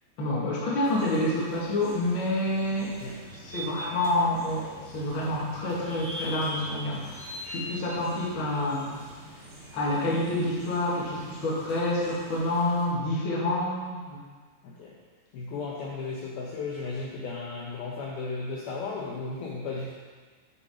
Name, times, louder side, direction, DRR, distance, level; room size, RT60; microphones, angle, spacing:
voice 1, 0.2-3.0 3.4-9.0 9.7-14.2, left 1 dB, 40° left, -6 dB, 1.9 m, -28 dB
sound 1, 0.8-12.9, equal, 50° right, 2.9 m, -43 dB
voice 2, 14.6-15.0 15.3-19.9, left 4 dB, 75° left, -3 dB, 2.4 m, -35 dB
8.1 x 7.7 x 5.1 m, 1.5 s
omnidirectional pair, 5.2 m